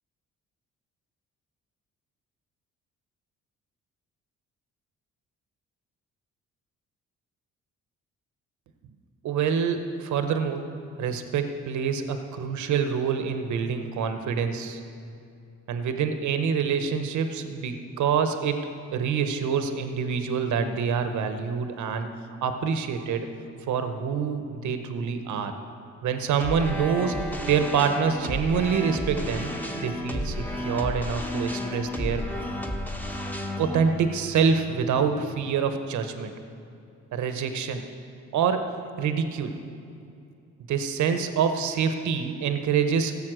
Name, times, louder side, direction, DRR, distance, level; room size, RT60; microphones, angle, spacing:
voice 1, 9.2-14.8 15.7-22.1 22.4-23.3 23.7-25.5 26.0-27.2 27.4-29.5 29.8-32.2 33.6-36.3 37.1-37.8 38.3-38.7 39.0-39.5 40.7-43.2, right 6 dB, 70° right, 8 dB, 1.0 m, -26 dB
sound 1, 26.4-35.6, left 1 dB, 5° left, 1.2 m, -33 dB
15.5 x 7.2 x 6.2 m, 2.5 s
cardioid pair, 90°, 30 cm